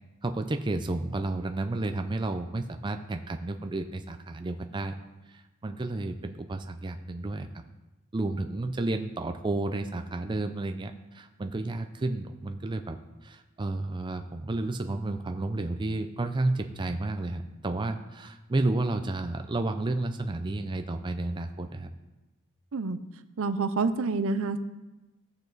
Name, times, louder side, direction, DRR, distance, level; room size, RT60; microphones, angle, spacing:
voice 1, 0.2-5.0 5.3-7.5 8.1-13.0 13.2-21.9, right 2 dB, 20° right, 6 dB, 0.4 m, -31 dB
voice 2, 23.4-24.6, right 4 dB, 65° right, 11 dB, 0.6 m, -27 dB
14.5 x 7.0 x 4.0 m, 1.1 s
head